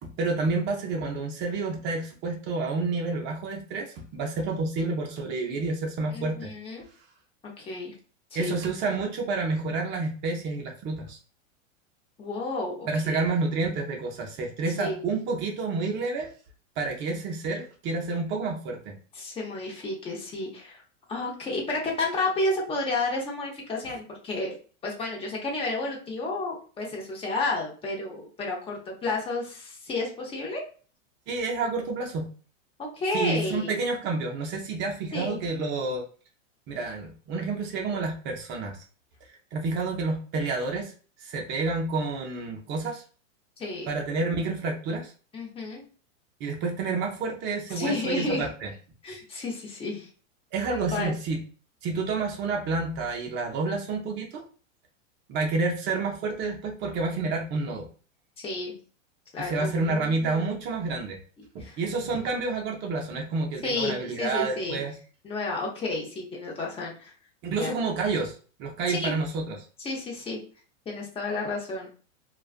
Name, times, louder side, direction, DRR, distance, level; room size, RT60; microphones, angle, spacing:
voice 1, 0.0-6.5 8.3-11.2 12.9-16.3 16.8-18.9 31.3-32.2 33.1-36.0 36.7-38.8 39.5-40.9 41.2-43.0 43.9-45.1 46.4-48.7 50.5-51.4 51.8-54.4 55.3-57.9 59.4-61.2 61.5-64.9 67.4-69.6, right 3 dB, 30° right, 1 dB, 0.5 m, -29 dB
voice 2, 6.1-6.8 7.6-7.9 8.4-8.6 12.2-13.2 14.8-15.1 19.1-20.8 21.1-24.5 24.8-30.6 32.8-33.7 35.1-35.4 43.6-43.9 45.3-45.8 47.7-48.5 49.0-50.1 50.7-51.1 58.4-58.8 59.3-60.4 61.6-61.8 63.6-64.8 65.2-67.1 67.5-67.7 68.9-69.1 69.8-70.4 70.9-71.9, left 2 dB, 15° left, -1 dB, 0.7 m, -31 dB
2.4 x 2.2 x 2.4 m, 0.39 s
hypercardioid pair, 115°, 38 cm